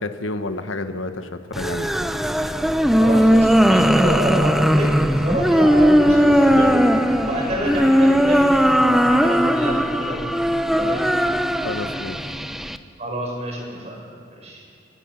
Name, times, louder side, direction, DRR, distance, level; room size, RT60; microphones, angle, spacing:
voice 1, 0.0-1.9 11.6-12.3, left 2 dB, 90° left, 8 dB, 1.3 m, -30 dB
sound 1, 1.5-12.8, equal, ahead, 0.6 m, -18 dB
voice 2, 3.0-6.9 7.2-10.3 10.6-11.3 13.0-14.0 14.3-14.6, equal, 35° right, -1 dB, 5.9 m, -28 dB
Wind instrument woodwind instrument, 4.8-8.4, left 1 dB, 40° left, 1.8 m, -38 dB
30.0 x 16.5 x 5.9 m, 2.3 s
head